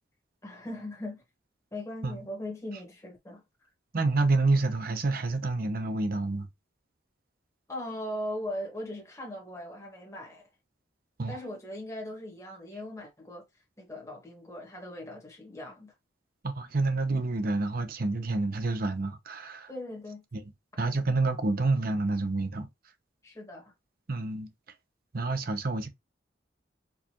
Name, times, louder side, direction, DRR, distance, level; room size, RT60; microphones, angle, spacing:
voice 1, 0.4-1.2 1.7-3.4 7.7-10.4 11.3-13.4 13.8-15.9 19.7-20.2 23.2-23.7, left 1 dB, 15° left, 1.3 m, -39 dB
voice 2, 3.9-6.5 11.2-11.4 16.4-19.7 20.3-20.4 20.8-22.7 24.1-24.5 25.1-25.9, right 3 dB, 50° right, 0.7 m, -28 dB
4.6 x 2.4 x 2.9 m
head